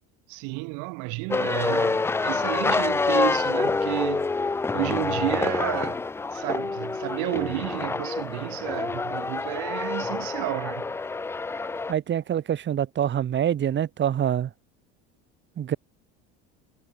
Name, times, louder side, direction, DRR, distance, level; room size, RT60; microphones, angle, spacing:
voice 1, 0.3-4.3 4.7-6.0 6.3-10.9, right 30 dB, 70° right, 2.3 m, -31 dB
sound 1, 1.3-11.9, left 3 dB, 10° left, 0.3 m, -27 dB
voice 2, 11.9-14.5 15.6-15.8, right 10 dB, 35° right, 1.9 m, -25 dB
supercardioid pair, 105°, 31 cm